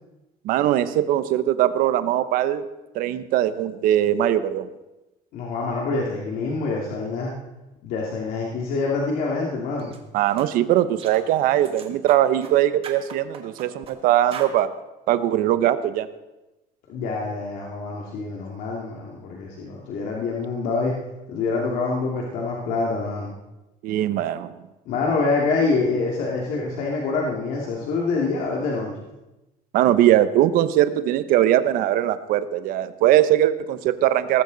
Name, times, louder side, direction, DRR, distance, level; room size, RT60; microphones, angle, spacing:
voice 1, 0.4-2.6 2.9-4.7 10.1-14.7 15.1-16.1 23.8-24.5 29.7-34.4, right 12 dB, 65° right, 12 dB, 1.0 m, -20 dB
voice 2, 5.3-7.3 7.8-10.0 16.9-20.9 21.3-23.3 24.9-28.9, left 3 dB, 70° left, -2 dB, 2.4 m, -26 dB
sound 1, 9.8-10.0 10.4-10.5 11.0-11.3 11.6-12.5 12.8-14.0 14.3-14.6, right 7 dB, 40° right, 1.7 m, -39 dB
18.5 x 14.5 x 4.0 m, 1.0 s
cardioid pair, 165°, 15 cm